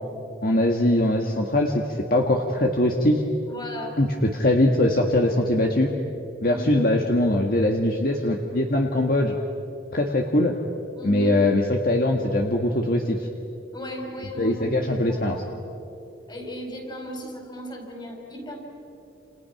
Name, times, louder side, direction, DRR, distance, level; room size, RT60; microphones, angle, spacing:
voice 1, 0.4-1.8 2.1-3.2 4.0-5.9 6.4-9.4 9.9-10.5 11.0-13.2 14.4-15.4, left 1 dB, 55° left, 2 dB, 1.6 m, -21 dB
voice 2, 3.5-4.0 6.4-6.9 10.9-11.4 13.7-15.6 16.3-18.6, equal, 25° left, 2 dB, 4.8 m, -37 dB
29.5 x 28.5 x 5.9 m, 2.7 s
head